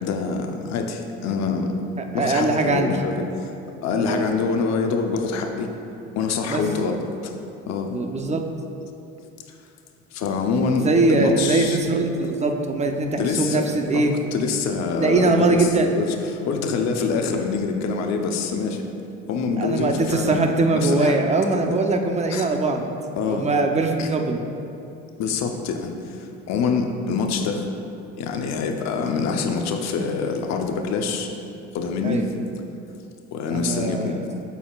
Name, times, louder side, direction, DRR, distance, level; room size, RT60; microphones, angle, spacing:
voice 1, 0.0-1.8 2.1-3.1 3.8-5.7 6.1-7.0 7.2-7.3 7.7-7.9 10.1-11.8 12.2-12.4 13.2-13.6 13.9-18.8 19.3-21.2 22.3-22.4 23.1-23.5 24.0-24.1 25.2-27.7 28.2-31.3 31.7-32.3 33.3-34.1, left 5 dB, 65° left, 3 dB, 0.8 m, -25 dB
voice 2, 2.1-2.9 4.0-4.3 6.5-6.6 7.9-8.4 10.8-14.1 15.0-16.0 19.6-22.9 23.3-24.4 32.0-32.2 33.5-34.2, right 3 dB, 25° right, 4 dB, 0.7 m, -21 dB
12.5 x 4.2 x 2.4 m, 2.7 s
supercardioid pair, 85°, 29 cm